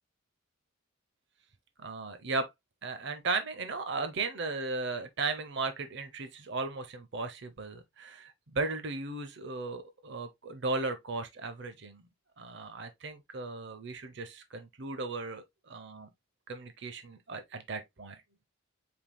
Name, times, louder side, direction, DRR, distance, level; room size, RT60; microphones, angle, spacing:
voice 1, 1.8-2.5 2.8-12.0 12.4-16.1 16.5-18.2, right 3 dB, 55° right, 0.7 m, -36 dB
5.6 x 3.5 x 2.2 m
head